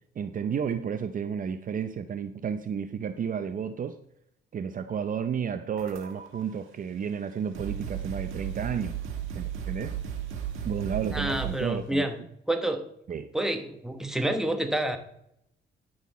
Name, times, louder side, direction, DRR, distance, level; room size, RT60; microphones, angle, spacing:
voice 1, 0.2-3.9 4.5-9.0 9.4-10.0 10.6-12.0 13.1-13.3, right 7 dB, 45° right, 9 dB, 0.6 m, -32 dB
sound 1, 5.8-6.4 7.2-7.3 7.5-11.7, right 9 dB, 85° right, 1.5 m, -35 dB
voice 2, 11.1-12.2 12.5-12.8 13.3-15.0, right 1 dB, ahead, 5 dB, 1.2 m, -28 dB
10.0 x 6.3 x 4.1 m, 0.75 s
cardioid pair, 90°, 20 cm